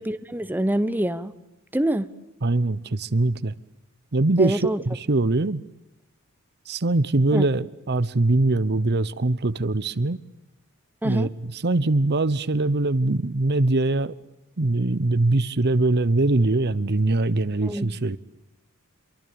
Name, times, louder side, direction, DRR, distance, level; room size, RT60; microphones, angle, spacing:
voice 1, 0.0-1.3 1.7-2.1 4.4-4.8 7.3-7.5 11.0-11.3 17.6-17.9, right 1 dB, 10° right, 0.9 m, -25 dB
voice 2, 2.4-3.5 4.1-5.6 6.7-10.2 11.0-14.1 14.6-18.2, right 2 dB, 50° right, 0.9 m, -22 dB
27.5 x 23.5 x 8.8 m
head